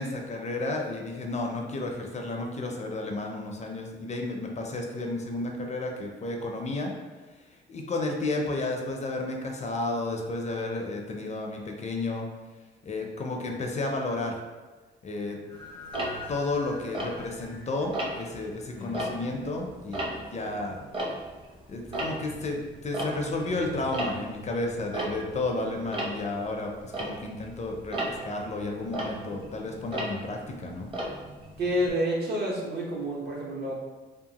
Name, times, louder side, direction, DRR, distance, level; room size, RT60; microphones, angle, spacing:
voice 1, 0.0-6.9 7.5-12.3 12.8-14.4 15.0-15.4 16.3-20.8 21.7-30.9, left 2 dB, 35° left, 1 dB, 0.4 m, -32 dB
sound 1, 15.5-19.5, left 4 dB, 80° right, 1.4 m, -47 dB
Tick-tock, 15.9-17.6 17.9-18.4 18.8-21.5 21.8-31.9, right 1 dB, 25° right, 0.7 m, -36 dB
sound 2, 18.7-25.0, left 3 dB, 90° left, 0.5 m, -51 dB
voice 2, 31.6-33.7, equal, 55° right, -3 dB, 0.9 m, -28 dB
2.9 x 2.1 x 2.8 m, 1.3 s
cardioid pair, 90°, 20 cm